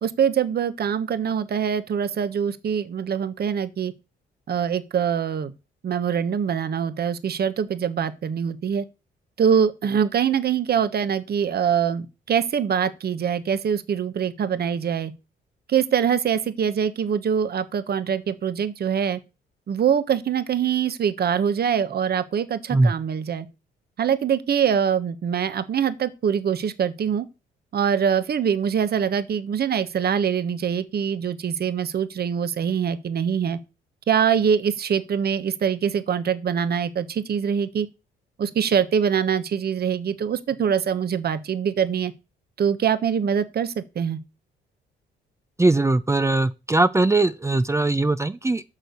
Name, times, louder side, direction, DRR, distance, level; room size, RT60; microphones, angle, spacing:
voice 1, 0.0-3.9 4.5-5.5 5.8-8.8 9.4-15.1 15.7-19.2 19.7-23.5 24.0-27.3 27.7-33.6 34.1-37.9 38.4-42.1 42.6-44.2, right 7 dB, 50° right, 1.3 m, -24 dB
voice 2, 45.6-48.6, right 2 dB, 15° right, 0.7 m, -20 dB
8.9 x 6.4 x 7.0 m
cardioid pair, 90°, 20 cm